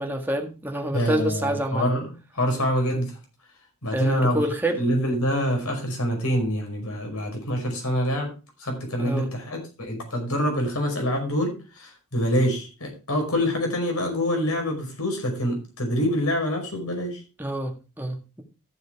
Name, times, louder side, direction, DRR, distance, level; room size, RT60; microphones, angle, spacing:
voice 1, 0.0-1.9 3.9-4.8 9.0-9.3 17.4-18.4, right 1 dB, 10° right, 1.8 m, -27 dB
voice 2, 0.9-3.2 3.8-4.4 4.8-8.3 8.6-17.2, equal, 75° left, 5.4 m, -26 dB
14.0 x 6.6 x 4.6 m
head